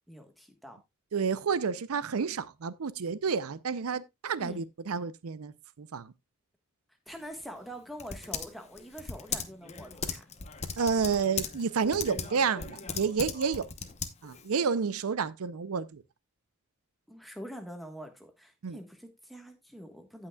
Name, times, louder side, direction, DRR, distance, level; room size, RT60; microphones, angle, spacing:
voice 1, 0.1-0.8 4.4-4.6 7.1-10.2 17.1-20.3, equal, ahead, 1.3 m, -45 dB
voice 2, 1.1-5.5 5.8-6.1 10.8-13.7 14.2-16.0 18.6-18.8, right 5 dB, 75° right, 0.5 m, -30 dB
Typing, 7.1-14.5, left 6 dB, 30° left, 0.8 m, -39 dB
16.5 x 5.8 x 2.3 m
head